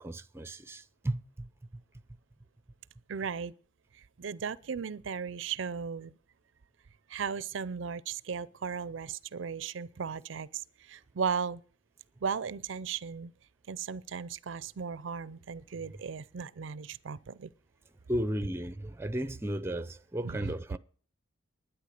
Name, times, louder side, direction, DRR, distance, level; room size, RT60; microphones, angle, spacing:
voice 1, 0.0-1.8 18.1-20.8, right 1 dB, 10° right, 0.6 m, -35 dB
voice 2, 3.1-3.5 4.2-6.1 7.1-11.6 12.2-13.3 13.7-17.5 20.2-20.5, right 6 dB, 65° right, 0.5 m, -36 dB
11.5 x 9.7 x 6.6 m
head